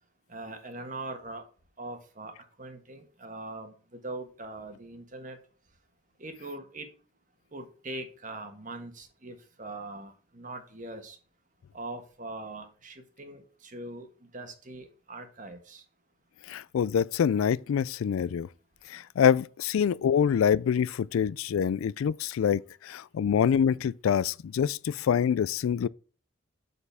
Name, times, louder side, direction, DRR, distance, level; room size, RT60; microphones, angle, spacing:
voice 1, 0.3-1.4 1.8-2.3 2.6-5.4 6.2-6.9 7.5-11.2 11.7-14.1 14.3-15.8, right 2 dB, 40° right, 1.5 m, -41 dB
voice 2, 16.5-18.5 18.9-25.9, left 8 dB, 85° left, 0.3 m, -26 dB
7.0 x 6.7 x 3.5 m
head